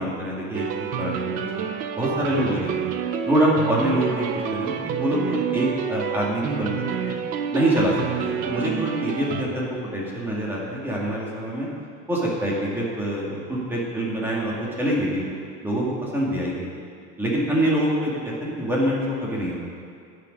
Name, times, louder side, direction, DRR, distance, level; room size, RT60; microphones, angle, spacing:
voice 1, 0.0-1.6 2.0-2.9 3.2-7.1 7.5-11.7 12.1-15.3 15.6-16.7 17.2-19.6, right 1 dB, 5° right, -5 dB, 2.0 m, -25 dB
sound 1, 0.5-9.4, right 7 dB, 25° right, 0.4 m, -28 dB
18.5 x 6.6 x 5.3 m, 2.2 s
cardioid pair, 175°, 35 cm